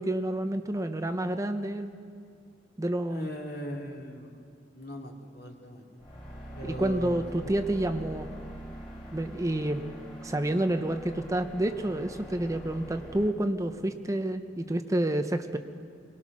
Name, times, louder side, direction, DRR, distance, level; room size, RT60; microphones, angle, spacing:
voice 1, 0.0-1.9 2.8-3.3 6.6-8.3 9.1-9.8 10.2-15.6, right 1 dB, 15° right, 8 dB, 0.7 m, -29 dB
voice 2, 3.1-4.3 4.7-6.0 6.5-7.5, equal, 60° left, 0 dB, 2.8 m, -39 dB
sound 1, 6.0-13.3, equal, 30° left, 3.8 m, -44 dB
23.0 x 19.5 x 6.1 m, 2.2 s
head